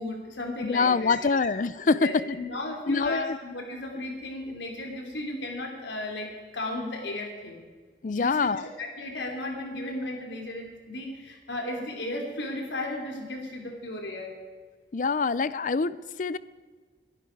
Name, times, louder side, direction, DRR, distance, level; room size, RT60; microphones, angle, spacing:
voice 1, 0.0-1.2 1.9-7.6 8.1-14.3, left 1 dB, 80° left, 1 dB, 3.4 m, -35 dB
voice 2, 0.6-2.4 2.9-3.4 8.0-8.6 14.9-16.4, left 4 dB, 45° left, 18 dB, 0.4 m, -25 dB
22.5 x 11.5 x 4.7 m, 1.5 s
head